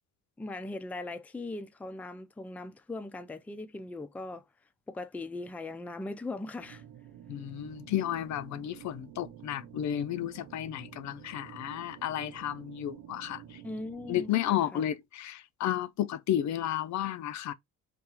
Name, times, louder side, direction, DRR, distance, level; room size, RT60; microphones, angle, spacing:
voice 1, 0.4-4.4 4.9-6.8 13.6-14.8, left 2 dB, 5° left, 0.4 m, -39 dB
sound 1, 6.6-14.3, right 11 dB, 85° right, 0.8 m, -50 dB
voice 2, 7.3-13.4 14.1-17.5, left 11 dB, 65° left, 0.5 m, -32 dB
3.6 x 2.4 x 2.9 m
cardioid pair, 90°, 30 cm